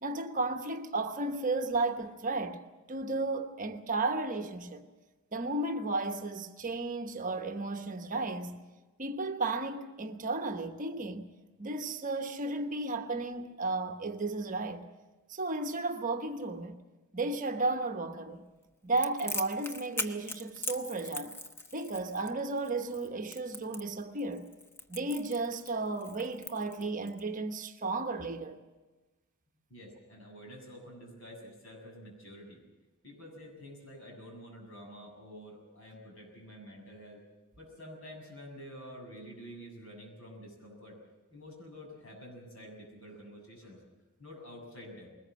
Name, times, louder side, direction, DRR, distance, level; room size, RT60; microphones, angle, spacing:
voice 1, 0.0-2.6 2.9-4.9 5.3-8.6 9.0-11.2 11.6-14.9 15.3-16.8 17.1-18.5 18.8-21.3 21.7-24.5 24.9-28.6, right 2 dB, 35° right, 1.1 m, -34 dB
Crackle, 19.0-27.2, left 2 dB, 10° left, 1.0 m, -40 dB
voice 2, 29.7-32.6 33.0-37.2 37.6-41.0 41.3-43.8 44.2-45.1, equal, 65° left, 7.3 m, -48 dB
21.0 x 19.5 x 7.6 m
head